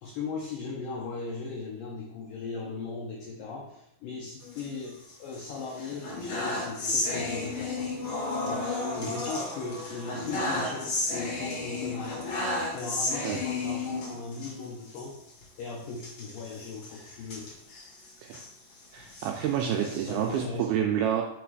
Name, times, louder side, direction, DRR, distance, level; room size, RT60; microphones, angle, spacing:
voice 1, 0.0-15.2 15.6-17.5 19.7-20.9, left 4 dB, 85° left, -1 dB, 1.9 m, -38 dB
sound 1, 4.4-5.4 5.7-14.5 14.9-15.0 15.3-15.4 16.0-18.5 19.0-20.4, left 2 dB, 55° left, 2.0 m, -33 dB
voice 2, 18.9-21.3, right 9 dB, 85° right, 1 dB, 2.2 m, -29 dB
5.8 x 4.0 x 4.7 m, 0.77 s
omnidirectional pair, 5.0 m